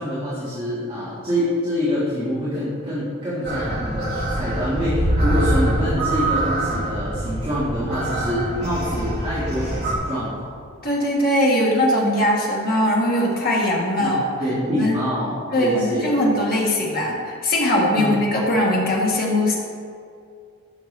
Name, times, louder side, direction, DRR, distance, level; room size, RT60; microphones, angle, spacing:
voice 1, 0.0-10.5 14.0-14.1 14.4-16.2 17.9-18.2, equal, 25° right, -11 dB, 1.7 m, -25 dB
sound 1, 3.4-9.9, right 1 dB, 45° right, 2.1 m, -24 dB
voice 2, 10.8-14.3 14.7-14.9 15.5-19.5, left 1 dB, 40° left, -3 dB, 1.6 m, -20 dB
11.5 x 5.9 x 3.3 m, 2.3 s
head